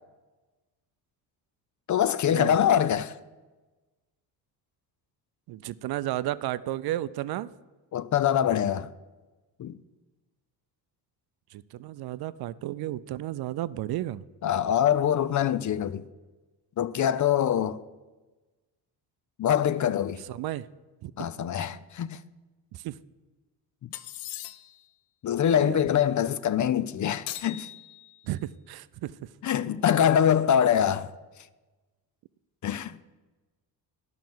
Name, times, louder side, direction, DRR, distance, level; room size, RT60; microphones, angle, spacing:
voice 1, 1.9-3.1 7.9-8.9 9.6-9.8 14.4-16.0 16.8-17.8 19.4-20.2 21.2-22.2 23.8-23.9 25.2-27.7 29.4-31.1 32.6-33.0, left 9 dB, 40° left, 0.6 m, -24 dB
voice 2, 5.5-7.5 11.5-14.2 20.2-20.7 21.0-21.1 22.7-23.0 25.4-25.8 28.3-29.2, right 14 dB, 60° right, 0.5 m, -33 dB
sound 1, 23.9-24.9 27.3-28.3, left 14 dB, 85° left, 0.7 m, -40 dB
10.5 x 5.8 x 7.7 m
supercardioid pair, 70°, 44 cm